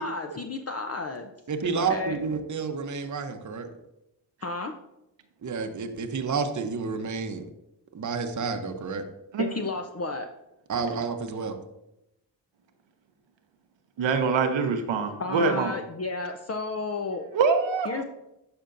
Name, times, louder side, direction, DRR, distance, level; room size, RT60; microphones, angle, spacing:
voice 1, 0.0-1.3 1.7-2.2 4.4-4.7 9.4-10.3 15.2-17.3 17.9-18.0, left 3 dB, 35° left, 4 dB, 0.6 m, -32 dB
voice 2, 1.5-3.7 5.4-7.4 7.9-9.0 10.7-11.6, right 5 dB, 40° right, 6 dB, 0.9 m, -30 dB
voice 3, 14.0-15.7 17.3-18.0, right 5 dB, 80° right, 7 dB, 0.9 m, -24 dB
11.0 x 4.5 x 2.6 m, 0.88 s
supercardioid pair, 45°, 45 cm